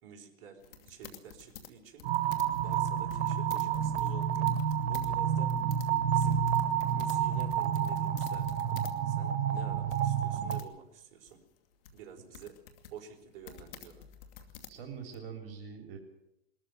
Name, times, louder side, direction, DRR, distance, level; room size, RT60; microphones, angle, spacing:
voice 1, 0.0-2.1 2.4-4.5 4.8-5.7 6.1-6.4 6.8-11.4 11.9-12.6 12.9-14.0, right 7 dB, 50° right, 3 dB, 4.4 m, -50 dB
sound 1, 0.6-5.1 5.4-9.0 9.3-9.4 9.9-10.6 11.3-15.2, left 9 dB, 65° left, 2.6 m, -50 dB
sound 2, 2.0-10.6, right 8 dB, 85° right, 1.4 m, -29 dB
voice 2, 14.7-16.0, right 6 dB, 70° right, 3 dB, 3.7 m, -44 dB
21.0 x 14.0 x 9.1 m, 0.82 s
hypercardioid pair, 115°, 31 cm